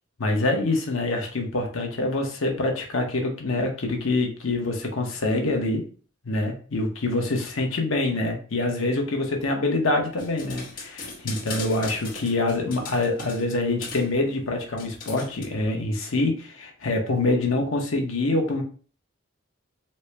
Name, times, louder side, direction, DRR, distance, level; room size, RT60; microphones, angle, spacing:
voice 1, 0.2-5.9 6.2-18.6, left 2 dB, 85° left, 2 dB, 0.9 m, -25 dB
sound 1, 10.2-13.5 13.8-14.1 14.8-15.5, left 4 dB, 45° left, 1.3 m, -38 dB
4.2 x 2.0 x 3.3 m, 0.40 s
head